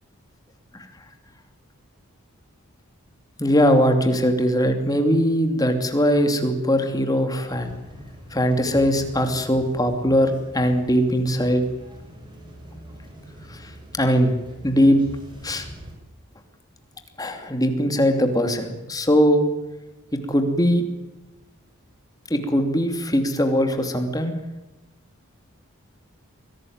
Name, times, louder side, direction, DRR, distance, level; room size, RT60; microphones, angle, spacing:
voice 1, 3.4-7.7 8.3-11.6 13.5-13.7 14.0-14.3 14.6-15.0 15.4-15.7 17.2-19.4 20.1-20.8 22.3-24.3, equal, 15° left, 5 dB, 2.8 m, -20 dB
sound 1, 7.5-15.9, equal, 20° right, 6.6 m, -43 dB
24.0 x 17.5 x 9.5 m, 1.0 s
head